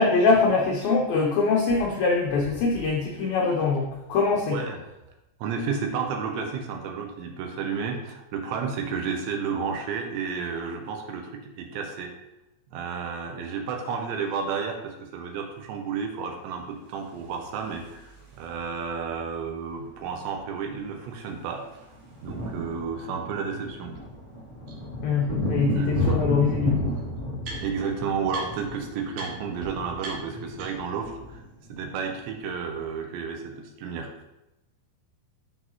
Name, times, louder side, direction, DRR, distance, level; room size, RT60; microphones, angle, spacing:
voice 1, 0.0-4.6 25.0-27.0, left 4 dB, 85° left, -1 dB, 2.0 m, -23 dB
voice 2, 5.4-12.1 12.7-21.6 22.2-24.0 25.7-26.2 27.6-31.4 31.7-34.1, right 6 dB, 80° right, 3 dB, 3.0 m, -32 dB
Thunder clap & Blackbird singing & traffic in background, 17.0-18.6 19.9-20.0 20.2-20.4 20.7-32.8, left 1 dB, 30° right, 0.8 m, -33 dB
sound 1, 23.9-24.0 24.7-24.8 26.1-26.2 26.4-27.9 28.3-28.7 29.1-29.3 29.6-29.7 30.0-31.0, right 2 dB, 55° right, 4.1 m, -41 dB
12.5 x 4.6 x 3.1 m, 0.93 s
omnidirectional pair, 5.4 m